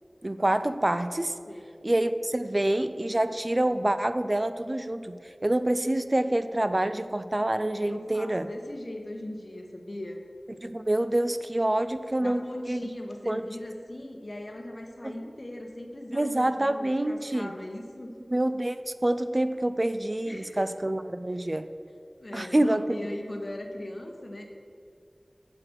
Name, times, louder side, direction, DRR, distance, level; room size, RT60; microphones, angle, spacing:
voice 1, 0.2-1.4 1.8-8.5 10.6-12.8 13.3-13.4 15.0-15.1 16.1-17.5 18.3-21.7 22.3-23.0, right 1 dB, 35° right, 11 dB, 0.3 m, -27 dB
voice 2, 1.5-1.8 7.8-10.2 12.2-18.1 20.3-20.7 21.3-21.5 22.2-24.5, left 1 dB, 55° left, 3 dB, 1.0 m, -39 dB
7.4 x 4.8 x 6.3 m, 2.4 s
wide cardioid pair, 50°, 0 cm